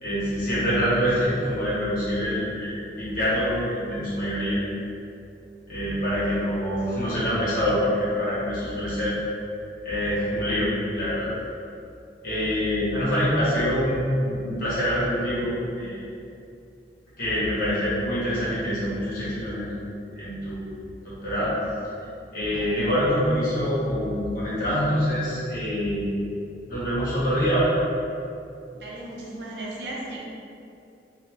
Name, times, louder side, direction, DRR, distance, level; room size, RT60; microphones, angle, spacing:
voice 1, 0.0-4.6 5.7-9.1 9.8-11.3 12.2-16.0 17.2-19.8 20.2-20.7 21.0-21.5 22.3-26.1 26.7-27.7, equal, 50° left, -10 dB, 1.4 m, -25 dB
voice 2, 28.7-30.2, right 1 dB, 70° right, -4 dB, 0.7 m, -36 dB
3.3 x 2.8 x 3.1 m, 2.6 s
head